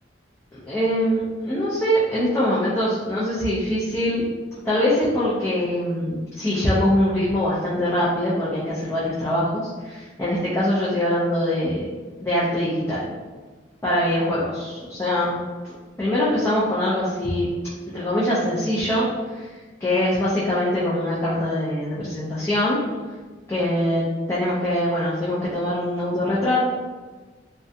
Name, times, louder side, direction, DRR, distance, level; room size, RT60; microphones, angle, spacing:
voice 1, 0.5-4.2 4.6-11.9 12.2-13.1 13.8-15.4 16.0-17.5 17.9-19.5 19.8-22.8 23.5-26.7, left 1 dB, 15° left, -9 dB, 0.4 m, -23 dB
2.4 x 2.1 x 2.6 m, 1.3 s
head